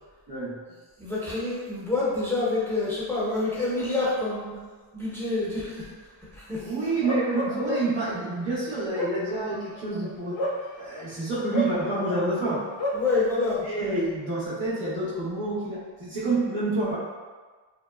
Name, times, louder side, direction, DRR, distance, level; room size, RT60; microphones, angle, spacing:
voice 1, 0.3-0.6 6.6-10.4 10.8-12.6 13.6-17.0, right 2 dB, 75° right, -10 dB, 1.1 m, -28 dB
voice 2, 1.0-4.7 4.9-5.9 6.3-6.7 12.9-13.6, left 3 dB, 5° left, -8 dB, 0.6 m, -27 dB
Bark, 7.0-8.1 8.7-11.1 11.5-13.1, left 1 dB, 65° left, 0.5 m, -31 dB
2.7 x 2.1 x 2.3 m, 1.4 s
cardioid pair, 45°, 48 cm